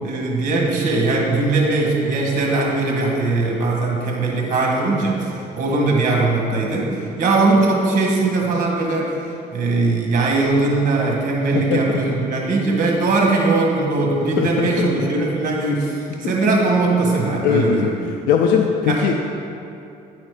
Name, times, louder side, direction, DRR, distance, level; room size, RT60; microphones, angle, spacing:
voice 1, 0.0-18.0 18.9-19.1, right 3 dB, 50° right, -1 dB, 1.7 m, -20 dB
voice 2, 11.5-12.2 14.4-14.9 16.2-16.3 17.4-19.1, left 7 dB, 85° left, 2 dB, 0.5 m, -20 dB
9.5 x 4.2 x 4.9 m, 2.7 s
cardioid pair, 110°, 17 cm